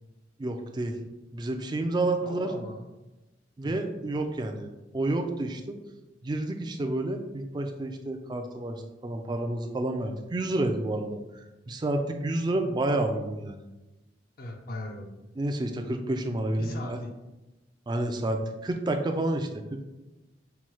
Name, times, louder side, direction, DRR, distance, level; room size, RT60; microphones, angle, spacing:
voice 1, 0.4-0.9 1.3-2.5 3.6-5.8 6.2-11.2 11.7-13.5 15.4-17.0 17.9-19.8, right 2 dB, 25° right, 5 dB, 0.4 m, -29 dB
voice 2, 2.2-2.8 3.6-3.9 14.4-15.1 16.6-17.1, left 2 dB, 55° left, 2 dB, 0.5 m, -39 dB
5.7 x 2.3 x 3.1 m, 1.0 s
head